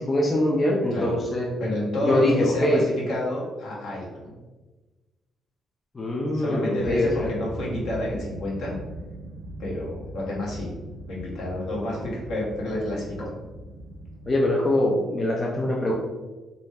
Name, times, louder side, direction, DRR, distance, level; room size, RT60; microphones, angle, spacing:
voice 1, 0.0-1.5 2.0-2.9 5.9-7.3 13.2-13.3 14.3-15.9, left 1 dB, 30° left, -1 dB, 0.4 m, -23 dB
voice 2, 1.6-4.3 6.3-8.8 9.6-10.7 11.1-13.4 15.9-16.0, left 1 dB, 75° left, -4 dB, 1.0 m, -29 dB
sound 1, 6.7-14.4, right 1 dB, 80° right, 0.4 m, -39 dB
2.5 x 2.1 x 3.3 m, 1.2 s
cardioid pair, 90°, 0 cm